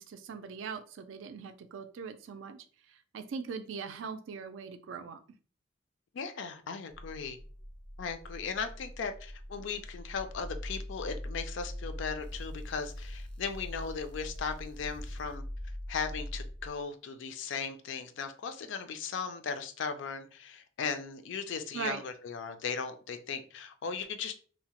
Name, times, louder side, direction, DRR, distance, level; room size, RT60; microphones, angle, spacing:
voice 1, 0.0-2.6 3.1-5.2 21.7-22.0, right 6 dB, 75° right, 8 dB, 0.3 m, -40 dB
voice 2, 6.1-7.4 8.0-15.4 15.9-24.4, left 5 dB, 65° left, 9 dB, 0.4 m, -37 dB
sound 1, 6.9-16.7, left 1 dB, 5° left, 0.4 m, -42 dB
2.7 x 2.0 x 2.9 m, 0.41 s
head